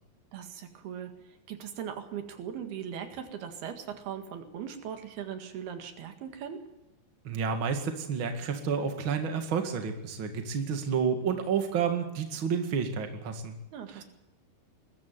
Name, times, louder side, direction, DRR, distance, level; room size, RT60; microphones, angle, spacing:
voice 1, 0.3-6.6 13.7-14.0, right 8 dB, 90° right, 6 dB, 4.0 m, -39 dB
voice 2, 7.2-13.6 13.9-14.0, right 6 dB, 40° right, 5 dB, 2.4 m, -30 dB
21.5 x 13.5 x 9.5 m, 0.89 s
omnidirectional pair, 4.3 m